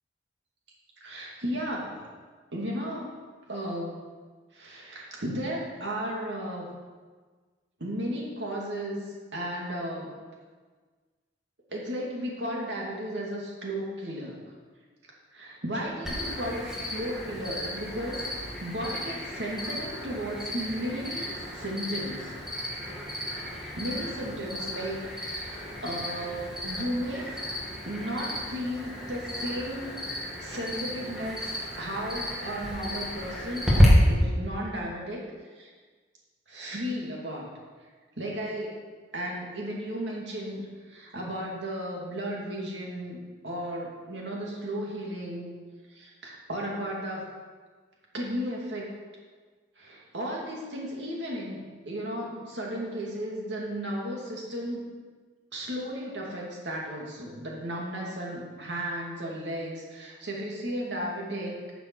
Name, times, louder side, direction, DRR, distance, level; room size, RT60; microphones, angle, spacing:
voice 1, 1.0-2.0 2.5-3.1 3.5-4.0 4.5-6.8 7.8-10.1 11.7-14.4 15.3-18.3 18.6-22.3 23.8-27.5 27.9-29.9 30.4-31.5 31.8-33.7 34.1-35.2 35.6-35.7 36.5-37.5 38.2-38.8 39.1-43.2 43.4-45.5 45.9-47.3 48.1-48.9 49.8-54.8 55.5-61.6, equal, 75° right, -3 dB, 2.5 m, -34 dB
Cricket, 16.0-33.8, left 1 dB, 5° right, 2.5 m, -32 dB
13.0 x 7.1 x 4.7 m, 1.4 s
head